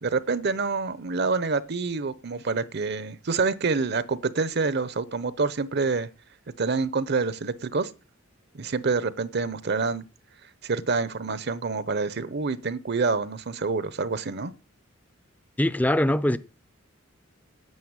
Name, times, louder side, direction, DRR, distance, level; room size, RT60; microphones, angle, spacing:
voice 1, 0.0-6.1 6.6-7.9 8.5-10.0 10.6-14.5, right 4 dB, 55° right, 0.8 m, -27 dB
voice 2, 15.6-16.4, left 1 dB, 10° left, 0.5 m, -22 dB
9.5 x 8.4 x 8.8 m
head